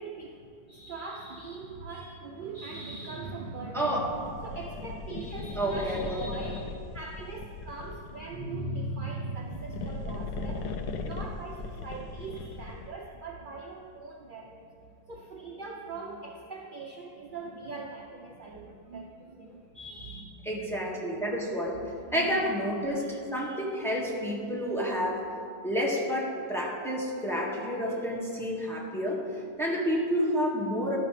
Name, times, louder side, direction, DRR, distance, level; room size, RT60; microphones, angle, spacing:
voice 1, 0.0-4.1 4.4-20.9 21.8-23.1, right 3 dB, 50° right, 0 dB, 0.6 m, -41 dB
voice 2, 3.7-4.1 5.6-6.2 20.4-21.8 22.1-25.2 25.6-31.0, equal, ahead, -4 dB, 1.6 m, -30 dB
sound 1, 3.9-8.4 9.3-13.0, left 3 dB, 80° left, 1.3 m, -38 dB
12.0 x 11.5 x 3.3 m, 2.5 s
omnidirectional pair, 1.7 m